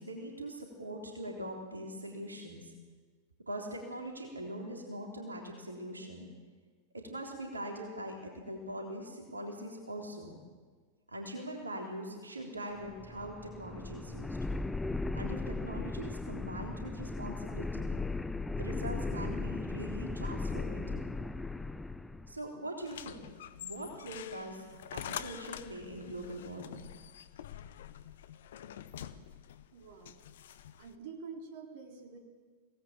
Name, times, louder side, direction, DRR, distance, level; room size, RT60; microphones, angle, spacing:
voice 1, 0.0-2.7 3.5-6.3 6.9-10.4 11.1-14.4 15.1-18.0 18.5-21.0 22.3-23.3 23.6-24.7 24.9-26.9, right 1 dB, 80° right, 1 dB, 3.5 m, -42 dB
sound 1, 12.8-22.4, left 3 dB, 5° left, 0.8 m, -37 dB
sound 2, 22.8-30.9, left 10 dB, 60° left, 1.0 m, -46 dB
voice 2, 29.7-30.2 30.8-32.2, right 5 dB, 50° right, 2 dB, 3.7 m, -47 dB
25.0 x 18.0 x 7.5 m, 1.4 s
figure-of-eight pair, 90°, 0 cm